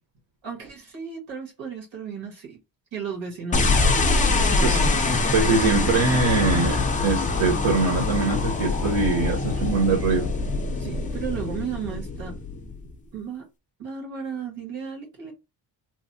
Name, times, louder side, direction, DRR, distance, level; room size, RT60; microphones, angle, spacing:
voice 1, 0.4-2.6 2.9-5.0 10.8-12.3 13.1-13.4 13.8-15.3, right 6 dB, 80° right, 1.6 m, -35 dB
sound 1, 3.5-12.9, left 3 dB, 20° left, 0.3 m, -24 dB
voice 2, 5.3-10.3, right 3 dB, 60° right, 1.0 m, -23 dB
3.1 x 2.0 x 2.6 m
wide cardioid pair, 160°, 46 cm